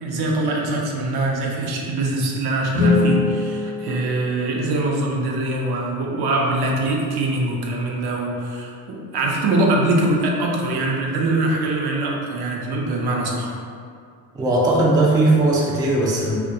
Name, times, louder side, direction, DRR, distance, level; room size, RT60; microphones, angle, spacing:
voice 1, 0.0-13.5, right 2 dB, 60° right, -1 dB, 0.6 m, -23 dB
sound 1, 2.7-4.9, left 3 dB, 65° left, 0.7 m, -22 dB
voice 2, 14.3-16.4, right 2 dB, 10° right, -4 dB, 0.3 m, -18 dB
2.2 x 2.1 x 2.7 m, 2.2 s
supercardioid pair, 65°, 45 cm